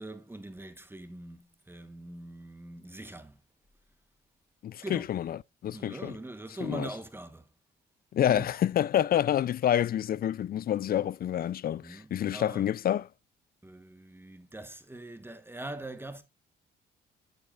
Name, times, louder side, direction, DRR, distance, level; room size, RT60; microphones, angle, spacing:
voice 1, 0.0-3.4 4.8-5.1 5.7-7.5 8.3-8.5 11.8-12.7 13.6-16.2, right 2 dB, 10° right, 1.3 m, -42 dB
voice 2, 4.6-5.4 5.6-6.1 6.6-6.9 8.1-13.1, left 10 dB, 50° left, 0.4 m, -28 dB
10.5 x 7.9 x 2.4 m
cardioid pair, 90°, 20 cm